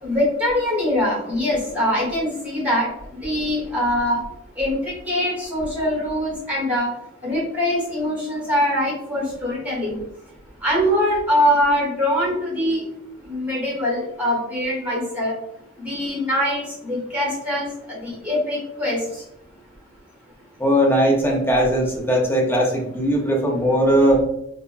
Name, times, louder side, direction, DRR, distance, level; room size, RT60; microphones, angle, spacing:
voice 1, 0.0-4.2 4.6-6.9 7.2-10.0 10.6-12.8 13.2-15.3 15.8-19.2, left 1 dB, 5° right, -5 dB, 1.1 m, -23 dB
voice 2, 20.6-24.2, equal, 10° left, -1 dB, 0.5 m, -19 dB
3.3 x 2.1 x 2.4 m, 0.79 s
head